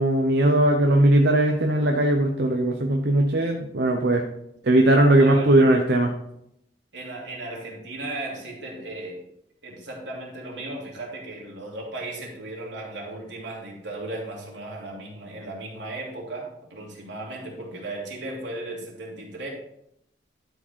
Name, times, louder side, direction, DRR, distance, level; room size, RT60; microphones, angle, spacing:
voice 1, 0.0-4.2 4.6-6.1, right 1 dB, 65° right, 2 dB, 0.8 m, -19 dB
voice 2, 5.2-5.6 6.9-9.2 9.6-19.5, right 2 dB, 85° right, -3 dB, 3.1 m, -36 dB
12.0 x 5.0 x 4.4 m, 0.77 s
head